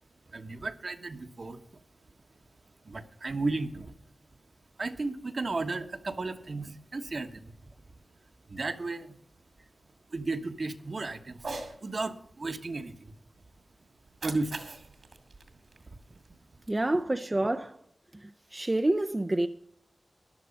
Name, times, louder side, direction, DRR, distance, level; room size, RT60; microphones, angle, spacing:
voice 1, 0.3-1.8 2.8-3.9 4.8-7.9 8.5-9.2 10.1-11.5 11.8-13.1 14.2-14.6 15.9-16.4, right 3 dB, 60° right, 1.2 m, -34 dB
Cat, 11.3-11.8 14.0-16.3, right 3 dB, 75° right, 2.4 m, -42 dB
voice 2, 16.7-17.8 18.1-19.5, right 1 dB, 30° right, 0.6 m, -28 dB
13.5 x 11.0 x 5.3 m
wide cardioid pair, 65°, 0 cm